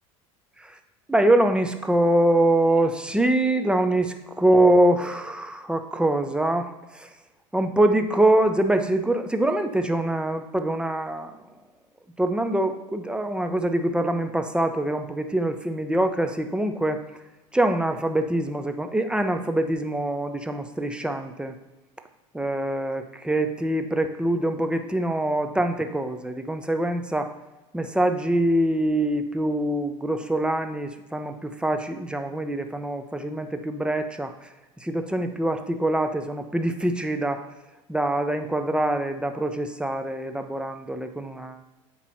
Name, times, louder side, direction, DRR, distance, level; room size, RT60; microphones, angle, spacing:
voice 1, 1.1-6.7 6.9-7.1 7.5-11.3 12.2-17.0 17.5-21.5 22.3-27.3 27.7-34.5 34.8-37.4 37.9-41.8, right 1 dB, 5° right, 7 dB, 0.6 m, -24 dB
8.2 x 3.1 x 5.5 m, 1.1 s
hypercardioid pair, 85°, 17 cm